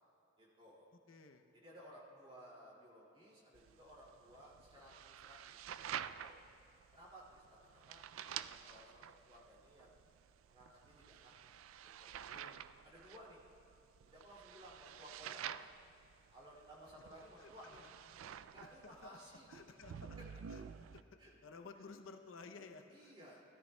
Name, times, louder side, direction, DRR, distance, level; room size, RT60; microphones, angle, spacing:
voice 1, 0.4-0.9 1.5-5.6 6.2-6.4 6.9-9.9 10.5-11.6 11.8-12.5 12.8-13.5 14.1-15.7 16.3-17.9 18.2-19.6 19.9-20.3 21.2-21.3 22.9-23.4, equal, 25° right, -4 dB, 2.4 m, -58 dB
voice 2, 1.1-1.4 12.3-12.6 16.9-17.0 17.4-17.5 18.6-19.1 19.5-20.2 20.5-20.7 20.9-23.1, left 4 dB, 75° left, 5 dB, 0.6 m, -55 dB
sound 1, 3.5-21.0, right 9 dB, 85° right, 0.3 m, -50 dB
17.5 x 13.0 x 2.2 m, 2.9 s
head